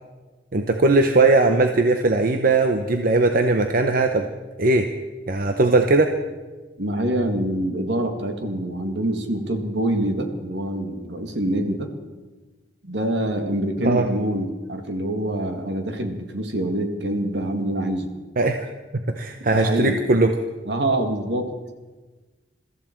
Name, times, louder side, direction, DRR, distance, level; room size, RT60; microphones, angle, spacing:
voice 1, 0.5-4.3 4.6-4.9 5.3-6.1 13.8-14.1 18.4-18.7 19.1-20.3, right 2 dB, 50° right, 6 dB, 0.8 m, -19 dB
voice 2, 6.8-11.9 12.8-18.1 19.5-20.0 20.7-21.6, right 1 dB, 70° right, 5 dB, 2.0 m, -25 dB
22.0 x 14.0 x 4.5 m, 1.3 s
head